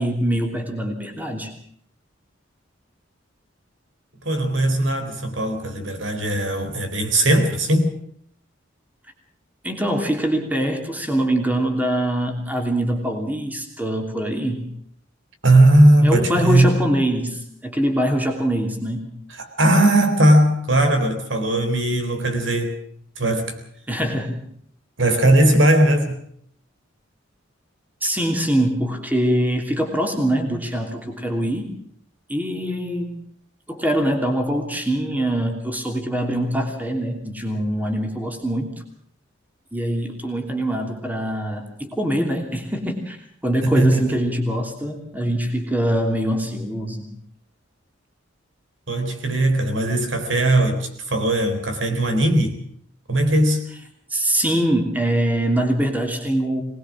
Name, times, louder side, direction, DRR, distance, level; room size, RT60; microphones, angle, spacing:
voice 1, 0.0-1.5 9.6-14.6 16.0-19.1 23.9-24.4 28.0-31.7 32.3-33.1 33.7-38.7 39.7-43.2 43.4-47.1 54.1-56.6, right 1 dB, 10° right, 3 dB, 3.0 m, -23 dB
voice 2, 4.2-7.9 15.4-16.7 19.4-22.8 23.2-23.6 25.0-26.2 43.6-44.2 48.9-52.6 53.1-53.7, right 1 dB, 70° right, 7 dB, 3.9 m, -18 dB
23.0 x 20.0 x 6.2 m, 0.64 s
head